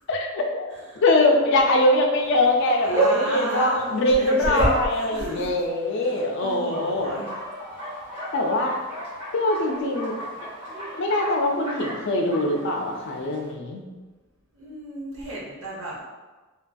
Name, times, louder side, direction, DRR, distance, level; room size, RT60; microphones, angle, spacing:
voice 1, 0.1-0.7 1.0-7.2 8.3-8.8 9.3-10.1 11.0-13.8, left 1 dB, 55° left, 1 dB, 0.3 m, -22 dB
voice 2, 0.7-1.0 2.8-5.5 6.0-7.3 7.8-8.0 14.5-16.0, right 1 dB, 85° right, -4 dB, 0.8 m, -31 dB
Bark, 2.2-13.5, equal, 25° right, 0.9 m, -32 dB
2.8 x 2.5 x 2.3 m, 1.2 s
head